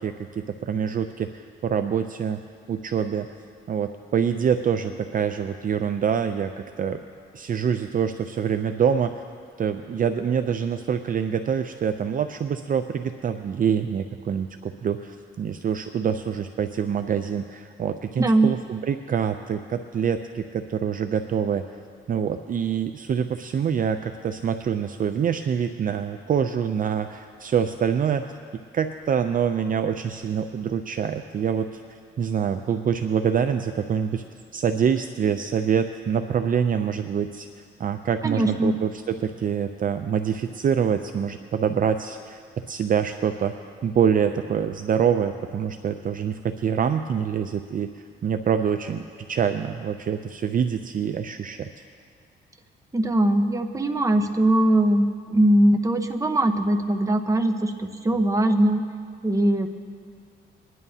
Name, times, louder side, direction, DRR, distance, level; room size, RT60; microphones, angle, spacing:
voice 1, 0.0-2.4 2.7-3.3 3.7-7.0 7.3-9.2 9.6-21.6 22.1-28.3 28.7-34.2 34.5-37.5 37.8-42.4 42.7-43.5 43.8-47.9 48.2-51.7, right 7 dB, 45° right, 8 dB, 0.5 m, -25 dB
voice 2, 18.2-18.5 38.2-38.8 52.9-58.8 59.2-59.7, right 1 dB, 15° right, 5 dB, 1.0 m, -21 dB
22.0 x 11.0 x 2.8 m, 2.2 s
cardioid pair, 90°, 20 cm